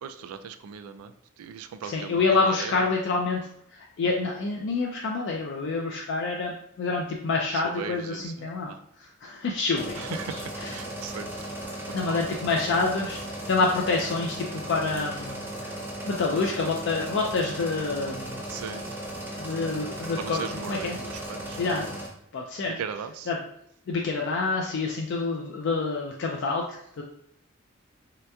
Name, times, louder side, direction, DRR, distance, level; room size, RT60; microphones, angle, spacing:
voice 1, 0.0-2.7 7.5-8.8 10.0-11.5 12.0-12.4 18.5-18.9 20.2-21.6 22.7-23.3, right 7 dB, 90° right, 13 dB, 0.3 m, -38 dB
voice 2, 1.8-3.5 3.7-8.7 9.0-10.0 10.6-10.7 11.9-13.2 13.5-15.8 16.1-18.4 19.4-21.0 21.6-22.0 22.3-22.8 23.3-23.4 23.9-27.0, left 3 dB, 55° left, 0 dB, 0.4 m, -27 dB
sound 1, 9.7-22.1, right 1 dB, 10° right, 0.6 m, -36 dB
3.3 x 2.8 x 2.2 m, 0.71 s
head